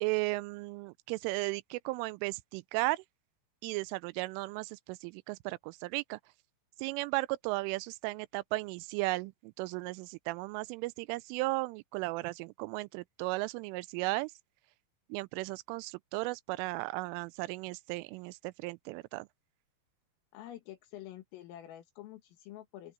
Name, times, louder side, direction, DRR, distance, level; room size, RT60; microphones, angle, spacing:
voice 1, 0.0-3.0 3.6-6.2 6.8-14.3 15.1-19.3, right 22 dB, 85° right, 2.9 m, -35 dB
voice 2, 20.3-22.9, left 13 dB, 80° left, 4.5 m, -48 dB
open air
omnidirectional pair, 5.9 m